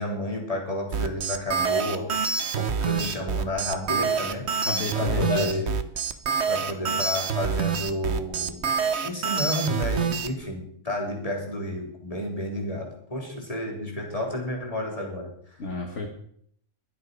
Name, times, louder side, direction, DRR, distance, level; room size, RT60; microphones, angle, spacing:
voice 1, 0.0-2.3 2.5-4.5 4.9-5.7 6.5-8.7 9.0-15.6, left 1 dB, 25° left, -1 dB, 3.8 m, -31 dB
sound 1, 0.9-10.3, right 6 dB, 55° right, 1.2 m, -26 dB
voice 2, 4.6-5.6 15.6-16.1, left 3 dB, 60° left, 1 dB, 2.1 m, -29 dB
22.5 x 7.9 x 5.4 m, 0.64 s
omnidirectional pair, 1.4 m